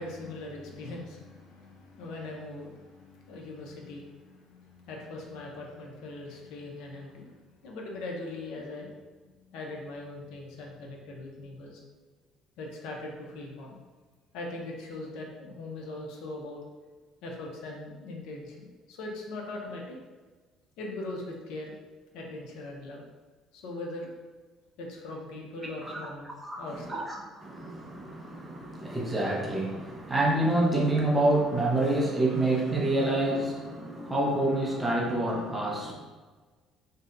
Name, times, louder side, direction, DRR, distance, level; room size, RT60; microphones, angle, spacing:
voice 1, 0.0-11.8 12.6-13.8 14.3-16.6 17.2-20.0 20.8-21.7 22.1-23.0 23.5-24.1 24.8-26.3 26.6-27.0, left 2 dB, 75° left, 0 dB, 0.6 m, -40 dB
voice 2, 26.4-35.9, right 1 dB, 10° right, -3 dB, 0.5 m, -27 dB
2.7 x 2.2 x 3.7 m, 1.3 s
cardioid pair, 170°, 0 cm